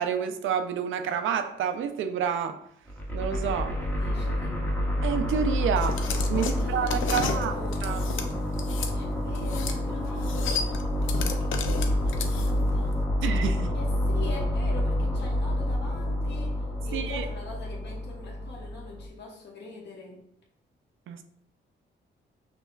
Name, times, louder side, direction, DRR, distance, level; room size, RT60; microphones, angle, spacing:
voice 1, 0.0-2.6 3.1-3.8 5.0-6.0 6.3-7.5 7.8-8.0 13.2-13.7 16.9-17.2 21.1-21.2, right 8 dB, 85° right, 8 dB, 0.4 m, -29 dB
sound 1, 2.9-19.1, left 1 dB, 10° left, 0.6 m, -28 dB
voice 2, 3.9-4.7 6.3-7.8 8.9-13.1 13.7-20.2, left 3 dB, 60° left, -3 dB, 1.2 m, -42 dB
sound 2, 5.8-8.9 9.3-9.8 10.0-12.7, left 6 dB, 85° left, 0.5 m, -33 dB
5.7 x 2.9 x 2.3 m, 0.70 s
cardioid pair, 120°, 20 cm